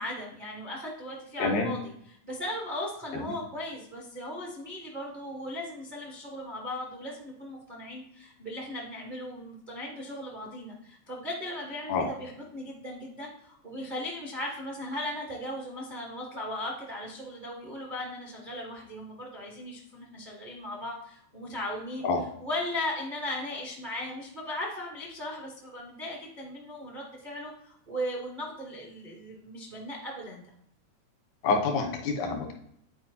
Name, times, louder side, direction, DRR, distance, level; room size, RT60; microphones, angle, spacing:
voice 1, 0.0-1.8 2.2-22.1 22.4-30.4, left 1 dB, 65° right, -2 dB, 0.4 m, -37 dB
voice 2, 1.4-1.7 3.2-3.3 11.9-12.1 22.0-22.2 31.4-32.5, left 4 dB, 90° left, 3 dB, 2.6 m, -27 dB
9.4 x 4.6 x 2.8 m, 0.70 s
omnidirectional pair, 3.3 m